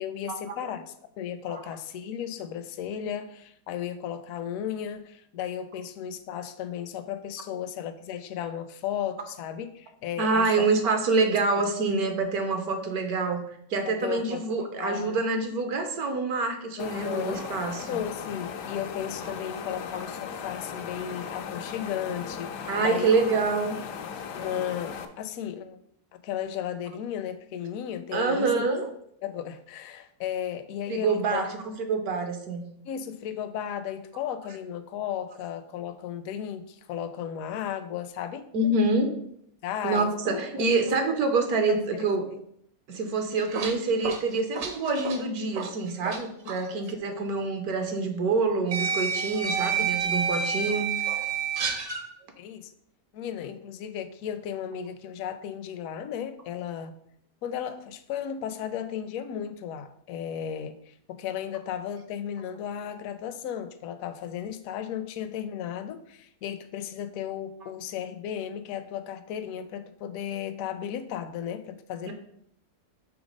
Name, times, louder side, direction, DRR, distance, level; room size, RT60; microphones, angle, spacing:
voice 1, 0.0-10.7 13.9-15.2 16.8-17.5 17.9-23.2 24.3-25.8 26.1-28.7 29.2-31.5 32.8-38.5 39.6-41.1 41.7-42.4 46.4-46.5 52.4-52.7 53.1-57.0 57.4-72.1, left 9 dB, 70° left, 10 dB, 0.9 m, -35 dB
voice 2, 10.2-13.4 13.7-18.0 22.7-23.8 28.1-28.9 30.9-32.6 38.5-39.1 39.8-42.3 42.9-50.9 72.1-72.2, right 3 dB, 70° right, 6 dB, 1.3 m, -26 dB
sound 1, 16.8-25.1, left 6 dB, 90° left, 1.2 m, -37 dB
sound 2, 43.2-46.2 46.5-46.7 47.8-47.9 48.7-52.0, right 6 dB, 55° right, 0.9 m, -29 dB
6.1 x 3.4 x 5.2 m, 0.69 s
omnidirectional pair, 1.7 m